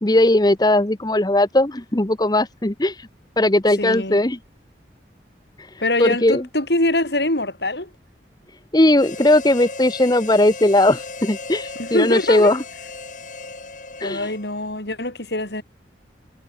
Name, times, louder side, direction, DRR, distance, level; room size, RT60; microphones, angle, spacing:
voice 1, 0.0-3.1 3.4-4.4 5.6-6.4 8.5-12.6 14.0-14.3, left 1 dB, 25° left, 1.0 m, -18 dB
voice 2, 3.8-4.2 5.8-7.9 11.8-12.5 14.0-15.6, left 1 dB, 70° left, 7.1 m, -23 dB
Harmonica, 9.0-14.7, left 3 dB, 45° left, 6.9 m, -36 dB
head